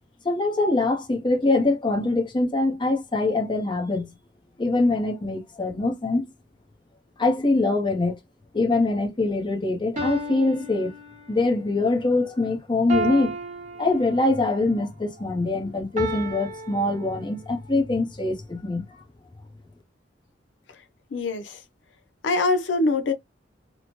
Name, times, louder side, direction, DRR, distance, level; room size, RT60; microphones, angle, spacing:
voice 1, 0.2-4.1 4.6-6.3 7.2-8.2 8.5-10.9 11.3-13.4 13.8-19.0, left 2 dB, 25° left, 0.7 m, -23 dB
sound 1, 9.2-9.3 10.0-11.6 12.9-14.5 16.0-17.6, right 1 dB, 45° right, 0.9 m, -33 dB
voice 2, 21.1-21.6 22.2-23.1, left 3 dB, 80° left, 0.6 m, -23 dB
3.0 x 2.0 x 2.8 m
head